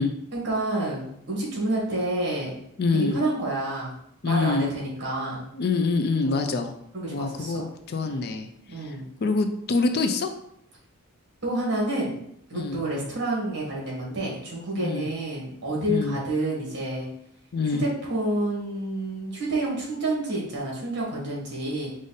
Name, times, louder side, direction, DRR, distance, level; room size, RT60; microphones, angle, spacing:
voice 1, 0.3-2.6 2.9-3.9 4.2-5.4 6.2-6.6 6.9-7.6 8.0-8.2 8.7-9.1 11.4-12.1 12.5-17.1 17.8-21.9, right 1 dB, 50° right, -4 dB, 1.7 m, -29 dB
voice 2, 2.8-3.2 4.2-4.7 5.5-6.7 7.1-8.5 8.8-9.0 9.2-10.3 12.5-12.8 14.7-15.1 15.9-16.2 17.5-17.8, left 3 dB, 45° left, 7 dB, 0.4 m, -25 dB
5.1 x 2.5 x 4.0 m, 0.73 s
head